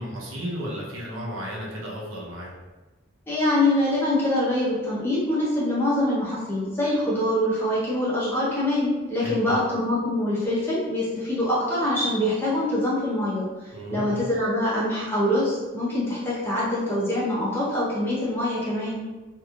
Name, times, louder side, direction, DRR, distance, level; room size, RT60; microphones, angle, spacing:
voice 1, 0.0-2.5 9.2-9.6 13.7-14.2, equal, 80° right, -4 dB, 0.8 m, -33 dB
voice 2, 3.3-13.5 13.9-19.0, left 1 dB, 10° left, -9 dB, 0.9 m, -24 dB
3.1 x 2.7 x 2.4 m, 1.2 s
head